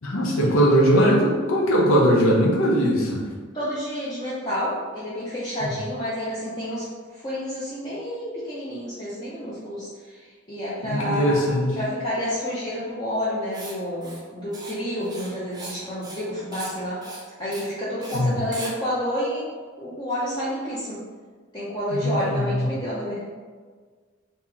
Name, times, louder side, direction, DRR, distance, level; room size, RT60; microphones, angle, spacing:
voice 1, 0.0-3.3 5.6-5.7 10.8-11.8 18.1-18.4 21.9-22.7, equal, 80° left, -3 dB, 0.8 m, -20 dB
voice 2, 3.5-6.8 7.1-11.5 11.7-17.0 17.4-19.4 19.8-21.0 21.5-23.3, equal, 20° left, -9 dB, 0.6 m, -29 dB
Writing, 13.5-13.7 14.0-14.2 14.5-14.7 15.0-15.8 16.0-16.3 16.5-16.7 17.0-17.2 17.5-17.7 18.0-18.2 18.5-18.7, right 2 dB, 20° right, 0.5 m, -38 dB
3.0 x 2.8 x 3.7 m, 1.5 s
head